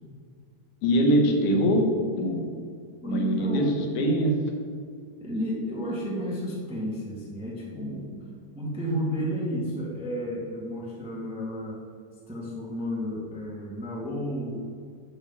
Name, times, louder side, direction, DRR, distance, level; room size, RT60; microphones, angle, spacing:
voice 1, 0.8-2.5 3.1-4.4, equal, 75° left, 2 dB, 2.6 m, -23 dB
voice 2, 3.0-3.7 5.2-8.1 8.5-11.8 12.3-14.6, equal, 10° right, -4 dB, 0.3 m, -32 dB
9.5 x 3.8 x 7.1 m, 2.2 s
omnidirectional pair, 3.5 m